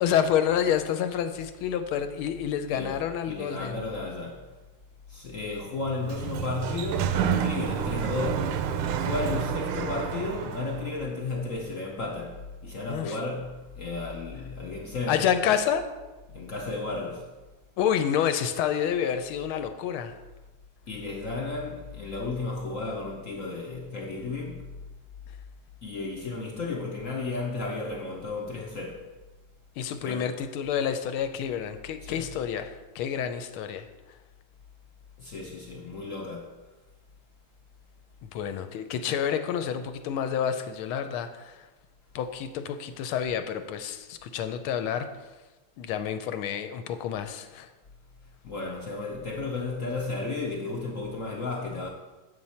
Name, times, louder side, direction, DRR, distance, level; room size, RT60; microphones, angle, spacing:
voice 1, 0.0-3.8 12.9-13.2 15.1-15.8 17.8-20.2 29.8-33.9 38.3-41.7 42.1-45.1 45.8-47.7, left 8 dB, 80° left, 1.4 m, -28 dB
voice 2, 2.7-3.0 3.3-4.4 5.1-8.6 9.0-15.3 16.3-17.3 20.9-24.7 25.8-29.1 30.0-30.2 32.0-32.3 35.2-36.6 48.4-51.9, left 3 dB, 65° left, 0.8 m, -33 dB
Sliding door, 5.8-11.0, right 7 dB, 85° right, 1.5 m, -29 dB
8.0 x 7.3 x 4.2 m
omnidirectional pair, 2.3 m